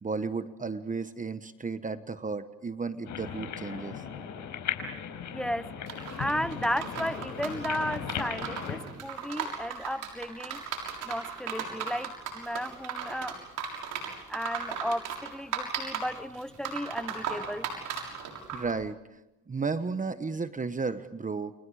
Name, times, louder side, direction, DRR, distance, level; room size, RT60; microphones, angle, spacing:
voice 1, 0.0-4.0 18.5-19.2 19.5-21.5, right 4 dB, 25° right, 1.1 m, -33 dB
sound 1, 3.0-8.8, left 8 dB, 80° left, 5.2 m, -37 dB
voice 2, 5.3-5.7 6.2-10.6 11.1-13.4 14.3-17.6, equal, ahead, 0.9 m, -34 dB
sound 2, 5.9-18.7, right 6 dB, 85° right, 6.7 m, -37 dB
30.0 x 28.5 x 4.9 m
cardioid pair, 90°, 30 cm